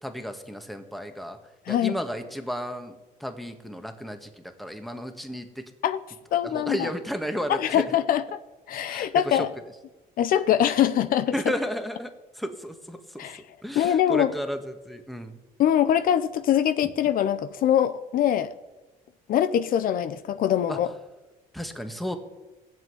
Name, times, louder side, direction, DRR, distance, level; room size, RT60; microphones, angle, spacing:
voice 1, 0.0-1.4 1.7-5.6 6.4-7.9 8.8-9.5 11.3-13.3 13.6-15.4 20.7-20.8 21.5-22.2, equal, ahead, 6 dB, 1.6 m, -33 dB
voice 2, 6.3-6.9 7.6-8.4 8.7-9.5 10.2-11.3 13.2-13.4 13.8-14.3 15.6-18.5 19.3-20.9, left 10 dB, 65° left, 12 dB, 0.7 m, -23 dB
16.5 x 7.6 x 9.7 m, 1.1 s
cardioid pair, 110°, 16 cm